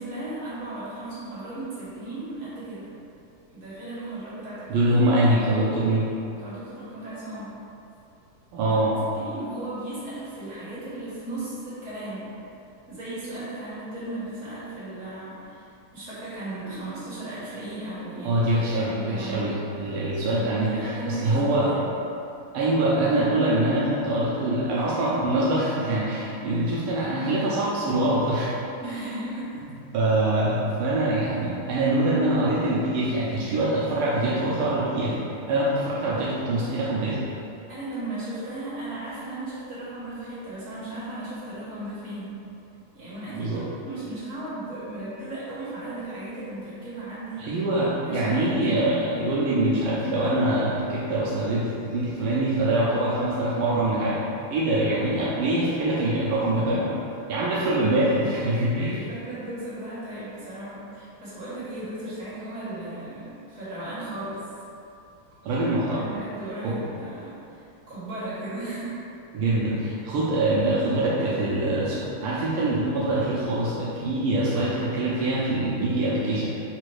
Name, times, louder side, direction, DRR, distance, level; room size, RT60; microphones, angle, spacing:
voice 1, 0.0-2.9 3.5-5.0 5.6-5.7 6.4-7.5 8.7-12.3 12.9-19.6 20.3-21.9 28.8-29.6 37.7-42.4 42.9-47.6 48.0-49.3 54.8-55.1 58.1-58.4 58.8-64.4 65.8-68.9, right 1 dB, 35° right, -12 dB, 1.7 m, -36 dB
voice 2, 4.7-6.1 8.5-9.0 18.2-21.8 22.5-28.5 29.9-35.2 35.5-37.2 43.3-43.6 47.4-54.2 54.5-57.0 57.3-59.0 65.4-66.1 66.6-66.8 69.3-76.5, right 1 dB, 80° right, -6 dB, 1.5 m, -24 dB
4.1 x 2.3 x 4.6 m, 2.7 s
omnidirectional pair, 2.4 m